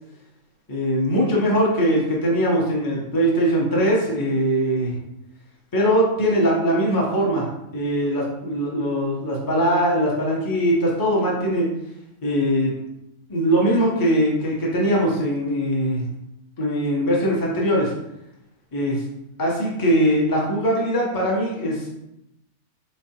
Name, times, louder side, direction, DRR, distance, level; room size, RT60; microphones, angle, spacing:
voice 1, 0.7-4.9 5.7-7.5 7.7-11.7 12.2-12.7 13.3-16.1 16.6-17.9 18.7-19.0 19.4-21.9, equal, 20° left, -3 dB, 0.7 m, -21 dB
4.3 x 3.1 x 2.8 m, 0.85 s
omnidirectional pair, 1.5 m